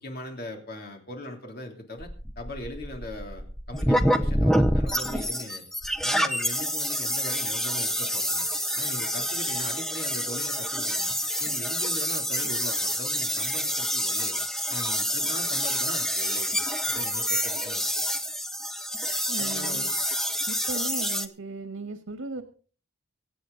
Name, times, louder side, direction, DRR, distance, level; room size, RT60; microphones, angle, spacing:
voice 1, 0.0-2.1 2.4-5.6 6.0-8.5 8.7-14.4 14.7-16.6 16.8-18.1 19.4-19.9, left 1 dB, 45° left, 2 dB, 3.1 m, -40 dB
sound 1, 2.0-21.3, equal, ahead, 0.8 m, -27 dB
voice 2, 19.3-19.9 20.5-22.4, right 3 dB, 90° right, 7 dB, 1.6 m, -37 dB
25.0 x 8.4 x 3.9 m, 0.40 s
head